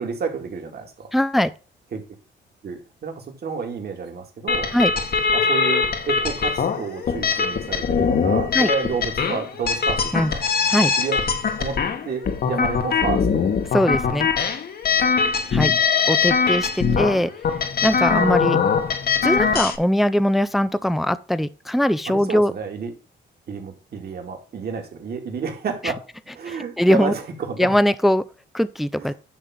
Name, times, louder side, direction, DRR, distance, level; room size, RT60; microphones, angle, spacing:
voice 1, 0.0-1.1 1.9-2.0 2.6-4.7 5.3-10.4 11.0-11.2 11.6-11.8 12.0-13.5 16.8-17.9 22.1-22.9 23.5-26.0 26.3-27.8 29.0-29.1, right 5 dB, 50° right, 2.4 m, -30 dB
voice 2, 1.1-1.5 4.7-4.9 8.5-8.7 10.1-10.3 10.7-10.9 13.7-14.3 15.5-15.7 16.1-17.3 17.8-18.6 19.2-22.5 26.5-27.1 27.6-28.2 28.5-29.1, equal, ahead, 0.5 m, -20 dB
sound 1, 4.5-19.8, left 5 dB, 50° left, 1.3 m, -22 dB
10.0 x 3.4 x 5.9 m
cardioid pair, 90°, 20 cm